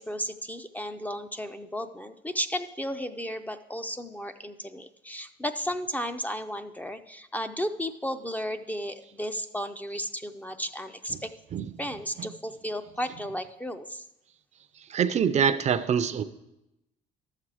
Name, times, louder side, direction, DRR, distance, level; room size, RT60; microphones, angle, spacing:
voice 1, 0.0-11.3 11.8-14.1, equal, 10° left, 8 dB, 0.4 m, -34 dB
voice 2, 14.9-16.2, right 7 dB, 40° right, 13 dB, 0.5 m, -24 dB
12.0 x 7.4 x 4.8 m, 0.91 s
cardioid pair, 110°, 17 cm